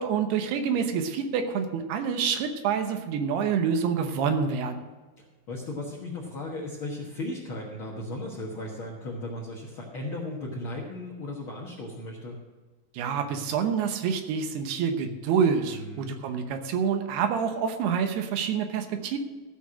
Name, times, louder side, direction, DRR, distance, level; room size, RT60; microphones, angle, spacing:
voice 1, 0.0-4.8 12.9-19.2, right 6 dB, 80° right, 6 dB, 3.0 m, -27 dB
voice 2, 5.2-12.4 15.7-16.2, left 1 dB, 80° left, -3 dB, 1.1 m, -36 dB
15.0 x 5.7 x 6.2 m, 1.3 s
omnidirectional pair, 4.7 m